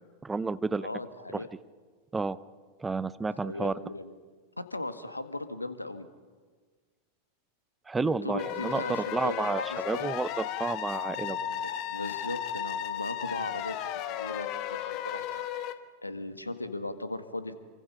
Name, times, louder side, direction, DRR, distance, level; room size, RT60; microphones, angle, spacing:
voice 1, 0.2-0.9 2.1-2.4 2.8-3.7 7.9-11.4, right 3 dB, 10° right, 16 dB, 0.7 m, -31 dB
voice 2, 0.8-1.5 3.3-4.1 4.6-6.1 7.9-10.1 11.1-15.3 16.0-17.5, left 2 dB, 85° left, 10 dB, 1.6 m, -38 dB
sound 1, 8.4-15.7, left 11 dB, 40° left, 1.3 m, -35 dB
27.5 x 24.5 x 5.7 m, 1.5 s
figure-of-eight pair, 90°, 0 cm